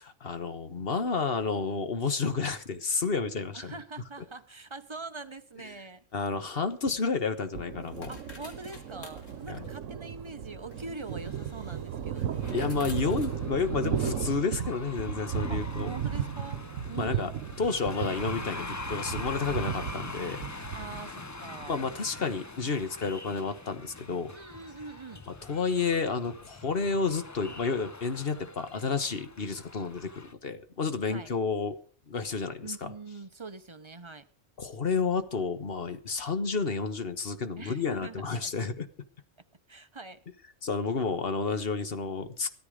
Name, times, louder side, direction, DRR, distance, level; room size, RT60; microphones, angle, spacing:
voice 1, 0.0-3.7 6.1-8.2 9.5-9.7 12.5-15.9 17.0-17.3 17.6-20.4 21.7-24.3 25.4-31.8 32.1-32.9 34.6-38.9 40.6-42.5, left 4 dB, 50° left, 1.5 m, -31 dB
voice 2, 3.5-6.0 8.1-12.2 15.5-16.6 16.9-17.3 20.7-21.8 24.3-25.3 31.1-31.3 32.6-34.3 37.6-38.5 39.7-40.2, right 3 dB, 25° right, 0.8 m, -43 dB
sound 1, 6.5-14.2, left 3 dB, 85° left, 2.7 m, -52 dB
Thunder, 7.5-22.3, right 8 dB, 90° right, 1.2 m, -35 dB
sound 2, 12.4-30.3, left 3 dB, 20° left, 0.5 m, -44 dB
15.5 x 13.5 x 5.1 m
omnidirectional pair, 1.3 m